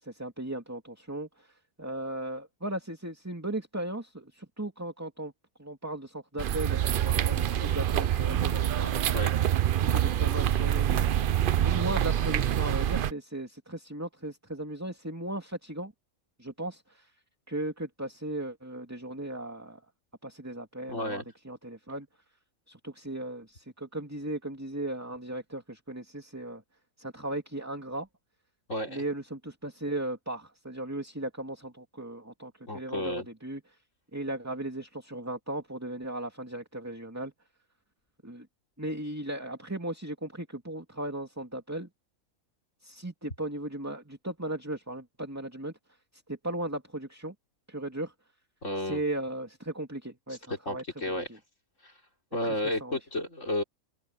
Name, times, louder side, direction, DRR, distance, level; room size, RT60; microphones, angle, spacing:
voice 1, 0.0-5.3 5.6-8.9 9.9-15.9 16.4-17.1 17.5-19.8 20.2-22.1 22.7-26.6 27.0-28.1 28.9-33.8 34.1-37.3 38.2-38.5 38.8-41.9 42.8-45.7 46.1-47.3 47.7-48.1 48.8-50.8 51.3-51.4 52.4-53.0, right 1 dB, 10° right, 2.5 m, -37 dB
sound 1, 6.4-13.1, right 11 dB, 60° right, 0.6 m, -26 dB
voice 2, 20.9-21.2 28.7-29.0 32.7-33.3 48.6-49.0 50.7-51.3 51.8-51.9 52.3-53.6, left 1 dB, 60° left, 4.4 m, -32 dB
omnidirectional pair, 1.5 m